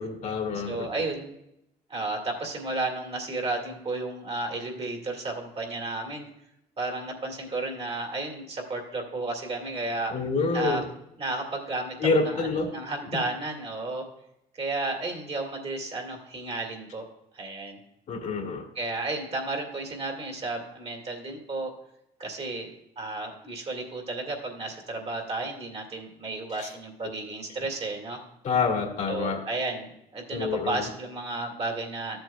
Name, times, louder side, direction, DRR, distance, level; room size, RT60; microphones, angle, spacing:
voice 1, 0.0-0.9 10.1-10.8 12.0-12.7 13.1-13.2 18.1-18.7 26.5-26.7 28.4-29.4 30.3-30.9, left 4 dB, 50° left, 2 dB, 1.8 m, -27 dB
voice 2, 0.7-1.3 1.9-6.3 6.8-10.1 10.5-10.8 11.2-14.0 14.5-17.1 17.3-17.8 18.8-21.7 22.2-22.7 23.0-28.2 29.1-32.2, right 2 dB, 35° right, 1 dB, 2.1 m, -33 dB
13.0 x 7.8 x 2.2 m, 0.81 s
cardioid pair, 110°, 17 cm